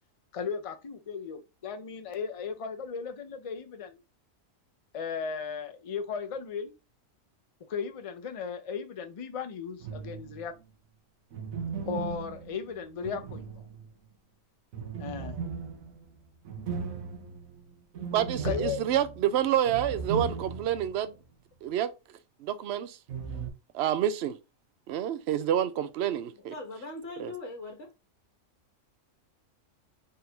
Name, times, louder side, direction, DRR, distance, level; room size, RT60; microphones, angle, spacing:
voice 1, 0.3-4.0 4.9-6.7 7.7-10.5 11.9-13.5 15.0-15.4 18.4-18.8, left 6 dB, 40° left, 0.5 m, -36 dB
sound 1, 9.8-10.5 11.3-14.1 14.7-20.9 21.2-21.3 23.1-23.5, right 5 dB, 90° right, 1.3 m, -37 dB
voice 2, 18.1-21.1 21.6-21.9 22.4-23.0 23.7-24.4 24.9-26.5 27.2-27.3, right 10 dB, 60° right, 0.7 m, -28 dB
voice 3, 26.3-27.9, left 2 dB, 65° left, 1.3 m, -41 dB
3.8 x 2.6 x 4.3 m
omnidirectional pair, 1.4 m